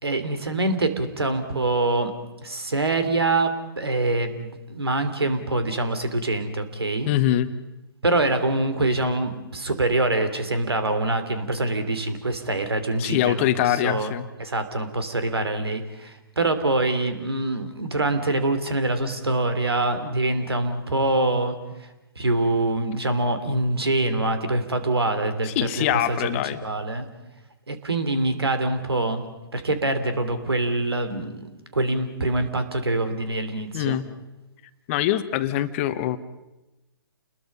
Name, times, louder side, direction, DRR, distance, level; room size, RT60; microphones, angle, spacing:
voice 1, 0.0-2.1 2.4-7.1 8.0-13.5 13.8-14.1 14.4-21.9 22.1-27.1 27.7-29.2 29.5-34.0, right 2 dB, 80° right, 9 dB, 3.1 m, -25 dB
voice 2, 7.1-7.5 13.0-14.2 25.4-26.6 33.7-34.1 34.9-36.2, left 12 dB, 30° left, 12 dB, 1.1 m, -23 dB
29.5 x 21.0 x 5.5 m, 1.0 s
figure-of-eight pair, 135°, 13 cm